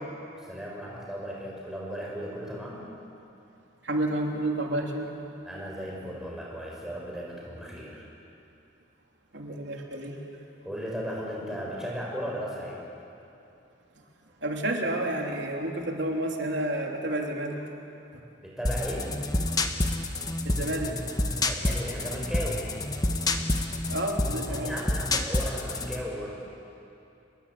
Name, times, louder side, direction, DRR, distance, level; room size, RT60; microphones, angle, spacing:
voice 1, 0.5-2.9 5.4-8.1 10.6-12.8 18.4-19.0 21.5-22.6 24.5-26.4, equal, 5° right, -3 dB, 5.4 m, -36 dB
voice 2, 3.8-5.1 9.3-10.2 14.4-17.6 20.4-20.9 23.9-24.7, right 1 dB, 70° right, 1 dB, 3.3 m, -30 dB
sound 1, 18.7-26.0, left 2 dB, 20° left, 1.2 m, -28 dB
28.5 x 21.0 x 8.5 m, 2.8 s
head